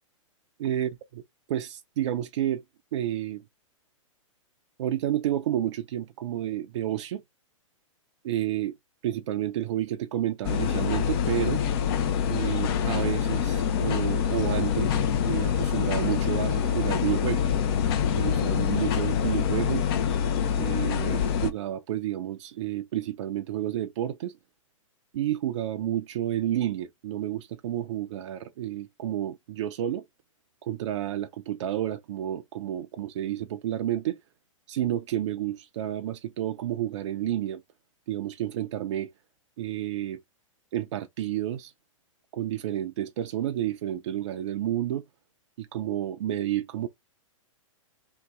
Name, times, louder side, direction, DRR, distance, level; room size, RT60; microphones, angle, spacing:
voice 1, 0.6-0.9 1.5-2.6 2.9-3.4 4.8-7.2 8.2-8.8 9.0-11.6 12.3-17.4 18.2-19.9 20.6-24.4 25.1-30.0 30.6-34.2 34.7-37.6 38.1-39.1 39.6-40.2 40.7-41.7 42.3-45.0 45.6-46.9, right 12 dB, 60° right, 0.4 m, -30 dB
sound 1, 10.4-21.5, left 8 dB, 45° left, 0.6 m, -25 dB
2.8 x 2.2 x 3.7 m
hypercardioid pair, 120°, 17 cm